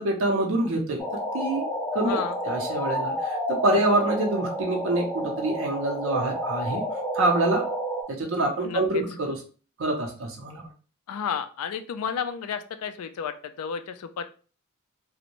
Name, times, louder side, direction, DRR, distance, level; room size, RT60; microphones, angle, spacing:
voice 1, 0.0-1.7 1.9-6.8 7.1-7.6 8.1-9.4 9.8-10.6, right 2 dB, 65° right, -1 dB, 0.5 m, -26 dB
sound 1, 1.0-8.0, equal, 10° left, 0.6 m, -30 dB
voice 2, 2.1-2.4 8.6-8.8 11.1-14.2, left 7 dB, 85° left, 9 dB, 0.3 m, -32 dB
2.5 x 2.1 x 2.9 m, 0.37 s
head